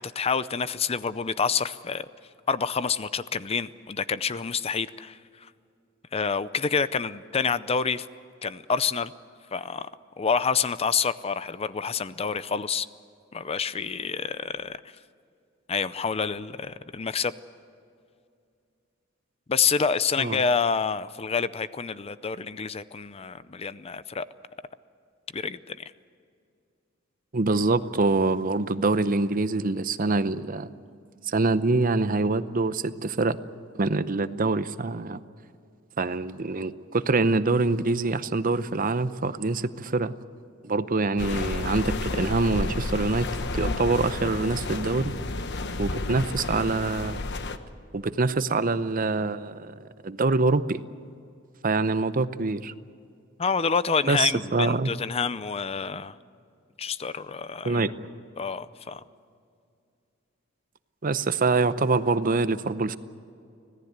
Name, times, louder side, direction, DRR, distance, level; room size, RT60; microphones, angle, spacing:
voice 1, 0.0-2.1 2.5-5.2 6.1-8.1 8.4-9.1 9.5-9.9 10.2-12.9 13.3-14.8 15.7-17.3 19.5-24.3 25.3-25.8 53.4-56.2 56.8-57.8 58.4-59.0, left 5 dB, 30° left, 15 dB, 0.5 m, -27 dB
voice 2, 27.3-30.7 31.3-33.4 33.8-35.2 36.0-40.1 40.6-43.3 43.5-45.1 45.8-47.2 47.9-50.8 51.6-52.7 54.1-54.9 57.6-57.9 61.0-63.0, right 3 dB, 45° right, 13 dB, 0.7 m, -25 dB
sound 1, 41.2-47.6, left 2 dB, 60° left, 1.1 m, -31 dB
25.5 x 17.5 x 8.1 m, 2.4 s
head